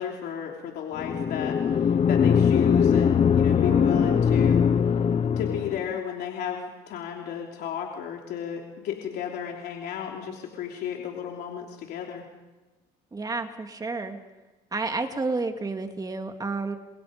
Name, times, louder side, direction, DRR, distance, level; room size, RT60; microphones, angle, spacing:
voice 1, 0.0-4.7 5.4-12.3, left 8 dB, 75° left, 0 dB, 3.3 m, -33 dB
sound 1, 1.0-5.9, left 7 dB, 40° left, 0.8 m, -21 dB
voice 2, 3.7-4.2 13.1-14.2 14.7-16.8, right 3 dB, 20° right, 5 dB, 2.7 m, -31 dB
30.0 x 26.5 x 5.3 m, 1.2 s
cardioid pair, 110°, 17 cm